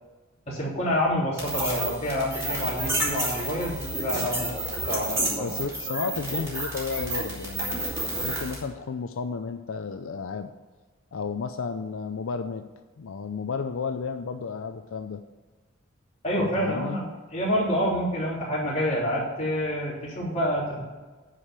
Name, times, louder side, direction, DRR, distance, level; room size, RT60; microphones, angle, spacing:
voice 1, 0.5-5.5 16.2-20.9, equal, 30° left, -6 dB, 3.4 m, -28 dB
sound 1, 1.4-8.6, right 1 dB, 15° right, 2.9 m, -30 dB
voice 2, 5.4-7.8 8.3-10.5 11.1-12.6 13.0-15.2 16.4-17.0, left 5 dB, 75° left, 8 dB, 0.5 m, -32 dB
9.8 x 5.0 x 7.4 m, 1.3 s
head